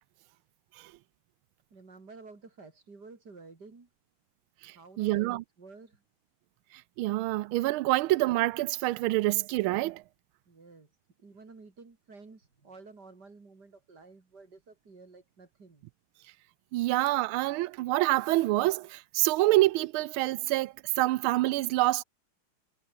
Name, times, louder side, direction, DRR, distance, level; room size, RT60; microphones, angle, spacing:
voice 1, 1.7-3.9 4.7-6.0 10.5-10.9 11.2-15.9, right 4 dB, 50° right, 3.9 m, -51 dB
voice 2, 4.6-5.4 7.0-10.0 16.7-22.0, right 18 dB, 80° right, 1.4 m, -27 dB
omnidirectional pair, 2.4 m